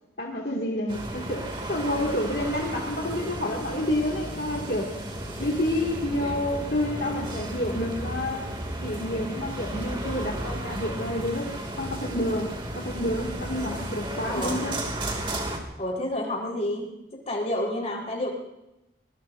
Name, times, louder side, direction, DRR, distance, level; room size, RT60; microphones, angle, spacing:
voice 1, 0.2-4.9 5.4-8.6 8.8-14.8, left 1 dB, 60° left, -2 dB, 2.3 m, -29 dB
sound 1, 0.9-15.6, right 1 dB, 30° right, 2.5 m, -34 dB
voice 2, 15.8-16.9 17.3-18.3, left 1 dB, 35° left, -1 dB, 4.3 m, -29 dB
24.0 x 21.5 x 2.7 m, 0.90 s
head